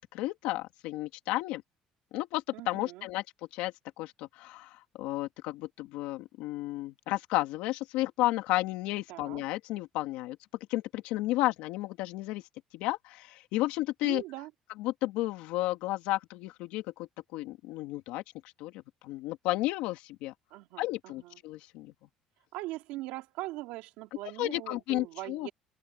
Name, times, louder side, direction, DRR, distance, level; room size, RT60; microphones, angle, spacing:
voice 1, 0.0-1.6 2.1-3.2 3.5-10.4 10.7-12.4 12.7-14.2 14.8-18.2 18.6-20.3 20.8-21.9 24.4-25.5, left 17 dB, 85° left, 2.7 m, -33 dB
voice 2, 2.5-3.1 9.1-9.4 14.0-14.5 20.5-21.4 22.5-25.5, right 18 dB, 90° right, 3.1 m, -41 dB
open air
cardioid pair, 130°, 2 cm